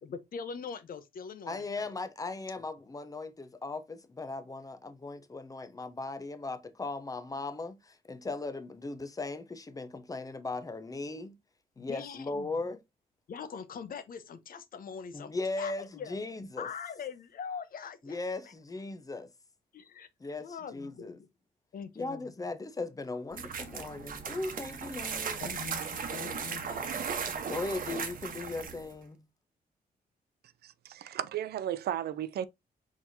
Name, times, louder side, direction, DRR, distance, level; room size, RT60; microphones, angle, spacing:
voice 1, 0.0-1.8 11.8-12.5 13.3-16.2 16.6-18.5 19.7-20.1 20.4-21.3 21.7-22.3 25.4-27.1, left 6 dB, 60° left, 0.9 m, -43 dB
voice 2, 1.5-11.4 11.8-12.8 15.1-16.7 18.0-19.3 20.2-21.2 22.0-25.4 27.5-29.2, left 3 dB, 20° left, 0.8 m, -38 dB
sound 1, 23.3-28.9, right 6 dB, 55° right, 1.0 m, -37 dB
voice 3, 30.6-32.5, right 11 dB, 75° right, 0.5 m, -34 dB
4.6 x 4.1 x 2.6 m
cardioid pair, 95°, 17 cm